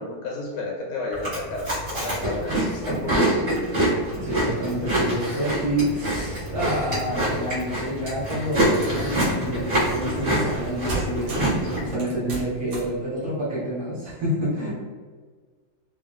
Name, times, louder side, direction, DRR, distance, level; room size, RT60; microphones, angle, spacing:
voice 1, 0.0-3.4 14.6-14.7, left 2 dB, 80° left, -2 dB, 1.5 m, -32 dB
Chewing mastication, 1.1-11.9, right 1 dB, 35° right, 1.1 m, -26 dB
voice 2, 4.1-14.7, equal, 55° right, -9 dB, 1.3 m, -28 dB
sound 1, 8.3-9.5 10.4-10.6 10.9-11.6 12.0-13.0, right 2 dB, 75° right, 1.7 m, -33 dB
3.9 x 2.0 x 2.3 m, 1.5 s
omnidirectional pair, 2.2 m